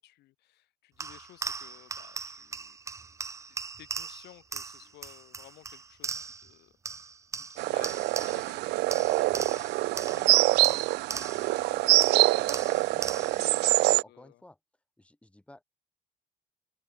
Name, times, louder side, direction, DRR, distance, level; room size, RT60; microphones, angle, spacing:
voice 1, 0.0-2.8 3.5-10.9 11.4-14.4, left 16 dB, 80° left, 2.2 m, -55 dB
sound 1, 1.0-6.5 6.8-8.6 8.9-11.6 12.0-13.5, right 4 dB, 20° right, 0.4 m, -39 dB
sound 2, 7.6-14.0, right 21 dB, 80° right, 0.5 m, -25 dB
voice 2, 12.9-14.6 15.0-15.6, left 1 dB, 5° left, 4.6 m, -53 dB
open air
cardioid pair, 110°, 17 cm